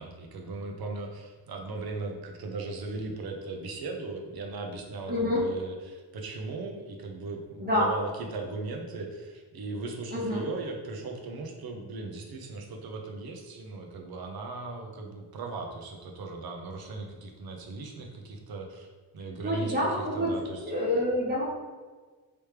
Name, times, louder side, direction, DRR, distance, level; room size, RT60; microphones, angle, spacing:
voice 1, 0.0-18.9 19.1-20.7, right 3 dB, 55° right, 2 dB, 0.7 m, -38 dB
voice 2, 5.1-5.4 7.6-7.9 10.1-10.4 19.4-20.3 20.6-21.5, left 1 dB, 20° right, -6 dB, 1.1 m, -27 dB
3.3 x 3.1 x 3.2 m, 1.4 s
cardioid pair, 110°, 43 cm